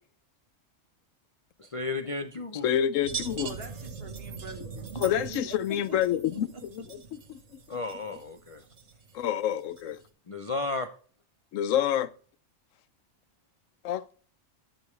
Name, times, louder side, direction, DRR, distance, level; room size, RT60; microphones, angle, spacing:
voice 1, 1.6-2.7 7.7-8.6 10.3-10.9, left 3 dB, 35° left, 0.5 m, -33 dB
voice 2, 2.5-3.6 4.9-7.4 9.1-10.0 11.5-12.1 13.8-14.0, left 10 dB, 85° left, 1.0 m, -28 dB
sound 1, 3.0-10.1, right 5 dB, 65° right, 1.5 m, -42 dB
voice 3, 3.4-5.6 5.9-6.0 6.3-6.6, right 3 dB, 50° right, 1.8 m, -43 dB
11.5 x 6.8 x 3.2 m
omnidirectional pair, 1.3 m